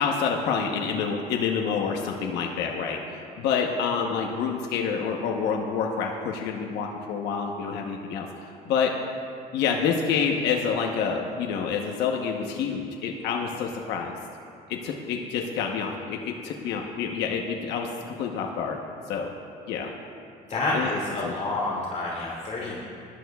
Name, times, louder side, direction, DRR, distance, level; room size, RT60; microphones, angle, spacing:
voice 1, 0.0-3.0 3.4-8.9 9.5-14.1 14.7-18.8 19.1-19.3 19.7-19.9 20.7-20.9 21.2-21.3, left 6 dB, 85° left, 1 dB, 1.0 m, -28 dB
voice 2, 20.5-22.8, left 2 dB, 45° left, -5 dB, 2.3 m, -28 dB
21.5 x 11.5 x 2.4 m, 2.5 s
cardioid pair, 110°, 17 cm